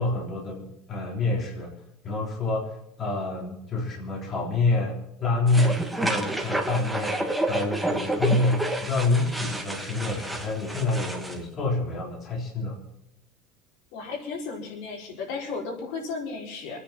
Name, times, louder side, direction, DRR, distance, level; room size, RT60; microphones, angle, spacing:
voice 1, 0.0-12.8, left 2 dB, 30° left, -1 dB, 3.7 m, -27 dB
sound 1, 5.5-11.4, right 1 dB, ahead, 1.6 m, -29 dB
voice 2, 13.9-16.8, left 4 dB, 70° left, 0 dB, 4.9 m, -34 dB
25.5 x 9.9 x 5.8 m, 0.79 s
cardioid pair, 175°, 0 cm